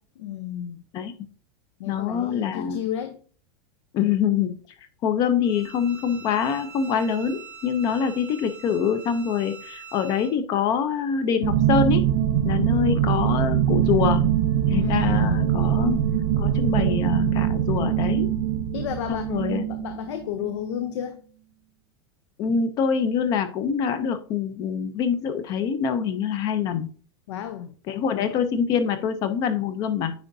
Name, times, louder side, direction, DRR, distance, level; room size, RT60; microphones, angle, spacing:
voice 1, 0.2-0.8 1.8-3.2 14.7-15.4 18.7-21.2 27.3-27.7, left 10 dB, 70° left, 0.7 m, -32 dB
voice 2, 1.9-2.8 3.9-4.6 5.0-12.0 12.4-14.3 14.7-16.0 16.4-18.3 19.1-19.7 22.4-26.9 27.9-30.1, left 7 dB, 25° left, 0.5 m, -25 dB
Bowed string instrument, 5.4-10.3, right 6 dB, 10° right, 0.7 m, -44 dB
sound 1, 11.4-20.9, right 10 dB, 65° right, 0.7 m, -23 dB
9.2 x 4.5 x 2.6 m
supercardioid pair, 175°, 15 cm